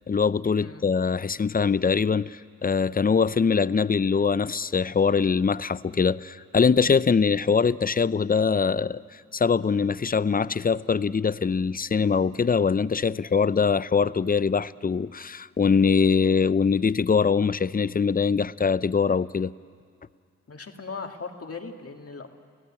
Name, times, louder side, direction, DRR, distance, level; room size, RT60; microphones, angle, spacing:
voice 1, 0.1-9.0 9.3-19.5, left 5 dB, 30° left, 18 dB, 0.6 m, -23 dB
voice 2, 20.5-22.3, left 4 dB, 50° left, 4 dB, 2.2 m, -38 dB
28.5 x 16.5 x 8.8 m, 2.2 s
cardioid pair, 45°, 30 cm